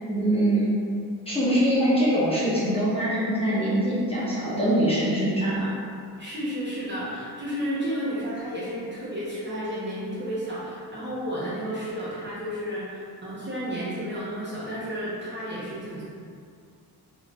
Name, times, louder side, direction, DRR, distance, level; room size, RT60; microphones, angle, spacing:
voice 1, 0.1-0.7 1.3-5.7, right 1 dB, 15° left, -10 dB, 0.9 m, -23 dB
voice 2, 6.2-12.9 13.2-16.0, equal, 30° right, -9 dB, 0.8 m, -32 dB
3.9 x 2.4 x 3.3 m, 2.3 s
wide cardioid pair, 130°, 40 cm